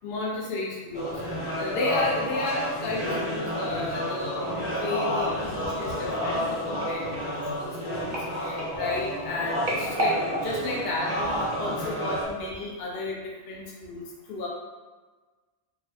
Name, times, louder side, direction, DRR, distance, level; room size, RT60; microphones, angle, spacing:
voice 1, 0.0-1.1 1.6-7.0 7.6-13.2 13.5-14.5, left 2 dB, 65° left, -3 dB, 0.8 m, -32 dB
sound 1, 0.9-12.2, equal, 30° left, 0.8 m, -30 dB
sound 2, 6.8-11.8 12.4-12.7 12.9-13.0, right 1 dB, 45° right, 0.8 m, -34 dB
3.8 x 2.0 x 2.8 m, 1.3 s
omnidirectional pair, 1.2 m